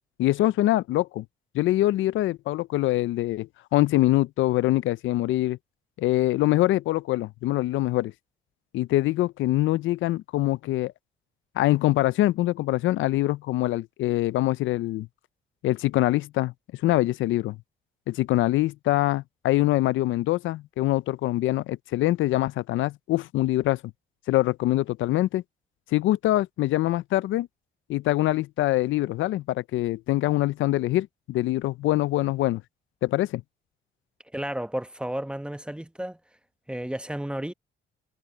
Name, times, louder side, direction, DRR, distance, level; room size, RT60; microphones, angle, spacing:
voice 1, 0.2-1.2 1.5-5.6 6.0-8.1 8.7-10.9 11.6-15.1 15.6-16.5 16.8-17.6 18.1-23.8 24.3-25.4 25.9-27.5 27.9-32.6 33.0-33.4, left 16 dB, 80° left, 0.5 m, -24 dB
voice 2, 34.3-36.2 36.7-37.5, right 1 dB, 5° right, 1.0 m, -32 dB
cardioid pair, 90°, 20 cm